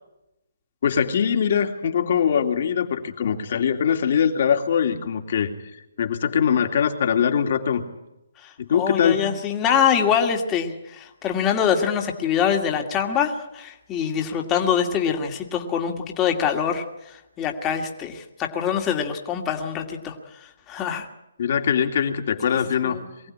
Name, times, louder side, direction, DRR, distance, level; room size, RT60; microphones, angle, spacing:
voice 1, 0.8-5.5 6.0-7.8 8.6-9.3 21.4-23.0, left 8 dB, 50° left, 5 dB, 2.8 m, -22 dB
voice 2, 8.4-21.1 22.8-23.0, left 8 dB, 15° left, 3 dB, 2.2 m, -24 dB
23.5 x 15.5 x 9.7 m, 0.89 s
hypercardioid pair, 155°, 0 cm